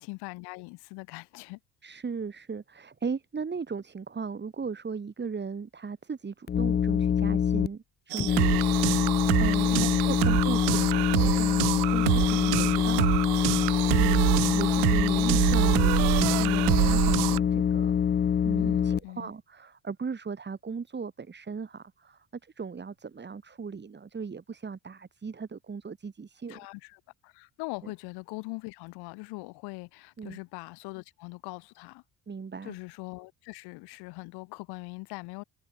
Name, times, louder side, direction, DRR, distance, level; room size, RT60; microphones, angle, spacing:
voice 1, 0.0-1.6 9.7-10.3 18.6-19.3 26.5-32.0 32.6-35.4, left 26 dB, 90° left, 3.3 m, -41 dB
voice 2, 1.8-13.2 14.0-18.0 18.4-26.6 27.8-27.9 30.2-30.4 32.3-32.8, right 5 dB, 25° right, 4.1 m, -37 dB
sound 1, 6.5-7.7 8.2-19.0, left 8 dB, 25° left, 0.6 m, -25 dB
sound 2, 8.1-17.4, right 30 dB, 85° right, 0.6 m, -26 dB
cardioid pair, 100°, 38 cm